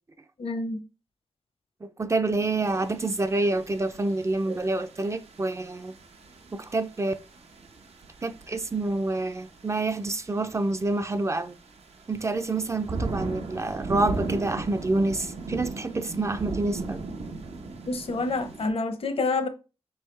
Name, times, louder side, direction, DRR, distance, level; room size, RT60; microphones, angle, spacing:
voice 1, 0.4-0.8 17.9-19.5, left 3 dB, 65° left, 0.7 m, -28 dB
voice 2, 2.0-5.9 6.5-7.1 8.2-11.5 12.1-17.1, right 2 dB, 30° right, 0.3 m, -27 dB
sound 1, 2.6-18.7, right 3 dB, 80° right, 0.7 m, -38 dB
4.4 x 3.4 x 3.2 m
wide cardioid pair, 105°, 10 cm